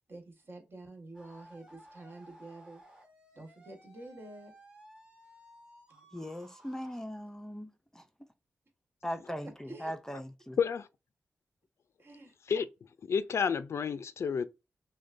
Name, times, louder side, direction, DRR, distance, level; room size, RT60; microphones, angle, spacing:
voice 1, 0.1-2.8 3.3-4.5 5.9-6.0 9.7-9.9 12.0-12.3, right 2 dB, 50° right, 1.7 m, -48 dB
sound 1, 1.1-7.0, right 1 dB, 20° right, 1.4 m, -57 dB
voice 2, 6.1-8.0 9.0-10.6, equal, 10° left, 0.5 m, -40 dB
voice 3, 10.6-10.9 12.5-12.7 13.0-14.4, left 6 dB, 70° left, 0.4 m, -30 dB
6.2 x 2.2 x 2.6 m
cardioid pair, 75°, 5 cm